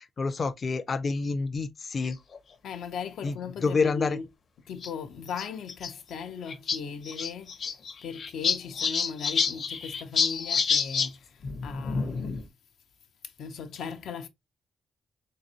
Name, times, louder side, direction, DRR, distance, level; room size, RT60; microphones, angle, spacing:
voice 1, 0.0-2.2 3.2-3.3 3.6-4.2, left 4 dB, 40° left, 0.4 m, -28 dB
sound 1, 2.0-2.4 3.3-3.4 3.6-3.7 4.8-4.9 5.3-5.9 6.2-6.3 6.5-6.8 7.0-11.1 11.4-12.5, left 5 dB, 55° left, 0.8 m, -28 dB
voice 2, 2.6-4.3 4.7-12.5 13.2-14.3, left 6 dB, 90° left, 0.7 m, -38 dB
3.9 x 3.3 x 2.8 m
cardioid pair, 120°, 0 cm